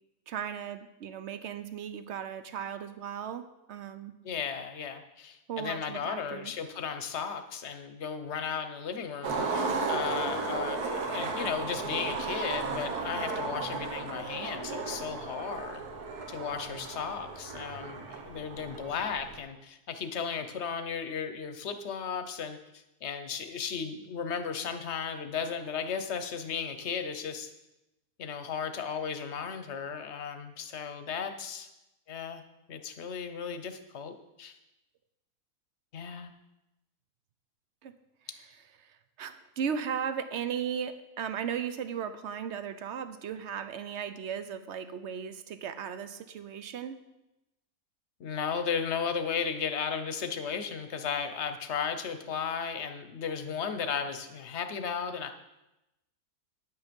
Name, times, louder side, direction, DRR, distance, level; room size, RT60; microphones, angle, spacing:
voice 1, 0.3-4.1 5.5-6.5 37.8-37.9 38.8-38.9 39.2-47.0, right 8 dB, 60° right, 11 dB, 0.8 m, -36 dB
voice 2, 4.2-15.8 16.3-27.5 28.2-31.7 32.1-32.4 32.7-34.6 35.9-36.3 48.2-55.3, left 6 dB, 50° left, 9 dB, 1.0 m, -35 dB
Skateboard, 9.2-19.4, right 4 dB, 75° right, 1.7 m, -34 dB
9.8 x 9.0 x 5.2 m, 0.94 s
omnidirectional pair, 1.6 m